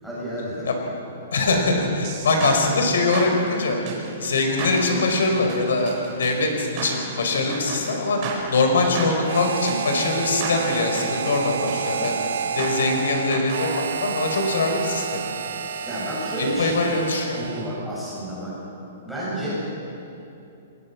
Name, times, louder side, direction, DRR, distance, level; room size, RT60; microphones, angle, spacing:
voice 1, 0.0-0.7 15.9-16.8 17.4-18.6 19.0-19.5, right 1 dB, ahead, -9 dB, 7.4 m, -30 dB
voice 2, 1.3-3.8 4.2-8.2 8.5-12.1 12.6-15.4 16.4-17.4, left 3 dB, 85° left, 3 dB, 5.2 m, -22 dB
sound 1, 2.0-13.6, right 4 dB, 25° right, 4.5 m, -34 dB
Harmonica, 9.2-17.9, right 6 dB, 65° right, 1.5 m, -30 dB
28.5 x 20.5 x 6.1 m, 2.7 s
hypercardioid pair, 180°, 0 cm